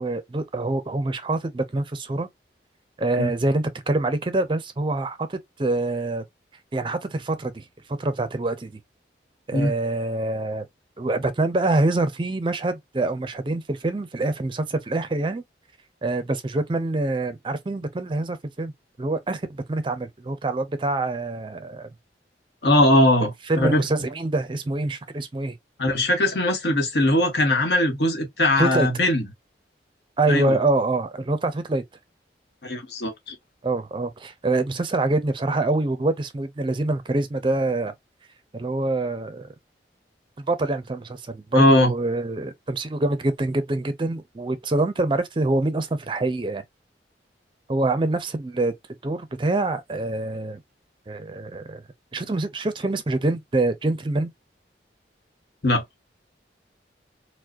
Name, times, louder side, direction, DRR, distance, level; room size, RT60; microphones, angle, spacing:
voice 1, 0.0-2.3 3.0-6.2 6.7-8.8 9.5-10.7 11.0-15.4 16.0-18.7 19.0-21.9 23.5-25.5 28.6-28.9 30.2-31.8 33.6-37.9 38.5-39.5 40.4-46.6 47.7-48.7 49.0-50.6 51.1-51.8 52.1-54.3, right 2 dB, 30° right, 0.5 m, -25 dB
voice 2, 22.6-23.8 25.8-29.2 30.3-30.6 32.6-33.3 41.5-41.9 55.6-55.8, left 1 dB, 70° left, 1.2 m, -20 dB
4.6 x 2.1 x 2.5 m
head